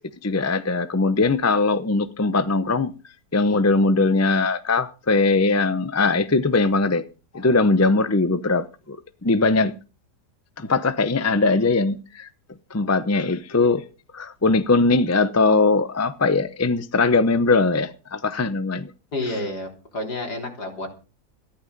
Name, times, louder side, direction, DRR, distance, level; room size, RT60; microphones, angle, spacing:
voice 1, 0.2-2.9 3.3-7.0 7.3-9.7 10.6-12.3 12.7-13.8 14.1-18.9, left 3 dB, 20° left, 0.4 m, -20 dB
voice 2, 19.1-20.9, left 2 dB, 70° left, 4.2 m, -30 dB
14.5 x 11.5 x 5.3 m
omnidirectional pair, 1.8 m